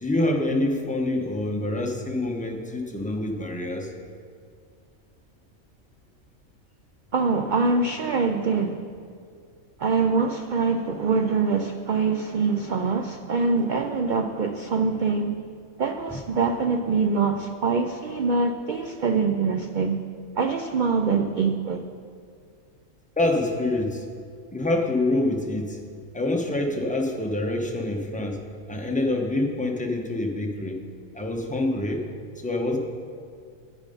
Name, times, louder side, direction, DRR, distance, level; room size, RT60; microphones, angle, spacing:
voice 1, 0.0-3.9 23.2-24.0 24.5-25.8 26.1-28.4 28.7-30.8 31.1-32.0 32.4-32.8, left 2 dB, 5° left, 1 dB, 0.7 m, -26 dB
voice 2, 7.1-8.9 9.8-15.4 15.8-20.0 20.4-21.8, right 4 dB, 80° right, 6 dB, 0.4 m, -24 dB
10.5 x 8.9 x 5.4 m, 2.3 s
omnidirectional pair, 1.4 m